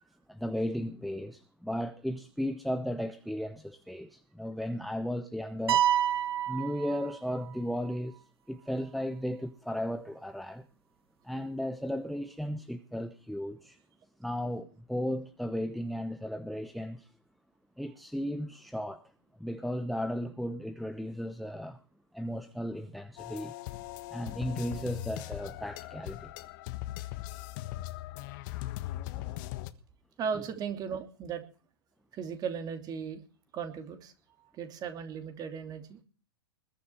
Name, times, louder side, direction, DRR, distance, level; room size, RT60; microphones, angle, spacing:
voice 1, 0.3-5.8 6.5-8.2 8.5-10.6 11.2-13.8 14.2-17.1 17.8-19.0 19.4-21.8 22.1-23.5 24.1-26.3 29.2-29.4, equal, ahead, 0.9 m, -35 dB
sound 1, 5.7-7.6, right 11 dB, 65° right, 1.2 m, -28 dB
sound 2, 23.2-29.7, left 16 dB, 45° left, 1.4 m, -39 dB
voice 2, 30.2-31.4 32.1-33.2 33.5-34.1 34.4-36.0, right 6 dB, 30° right, 2.9 m, -36 dB
21.0 x 10.0 x 4.4 m
hypercardioid pair, 110°, 14 cm